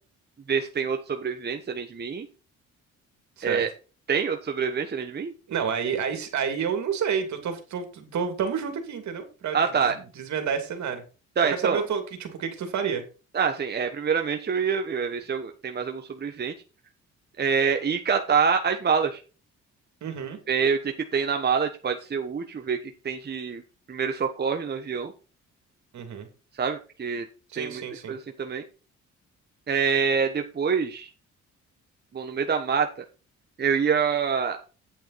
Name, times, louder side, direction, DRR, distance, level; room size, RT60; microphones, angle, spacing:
voice 1, 0.5-2.3 3.4-3.7 4.1-5.3 9.5-9.9 11.4-11.8 13.3-16.5 17.4-19.2 20.5-22.8 23.0-23.6 23.9-25.1 26.6-27.2 27.6-27.8 28.1-28.6 29.7-31.1 32.1-33.0 33.6-34.6, right 6 dB, 35° right, 5 dB, 1.2 m, -26 dB
voice 2, 5.5-11.0 11.5-13.0 20.0-20.4 25.9-26.3 27.5-28.2, right 7 dB, 65° right, 6 dB, 2.7 m, -30 dB
9.0 x 7.7 x 4.1 m, 0.34 s
cardioid pair, 90°, 30 cm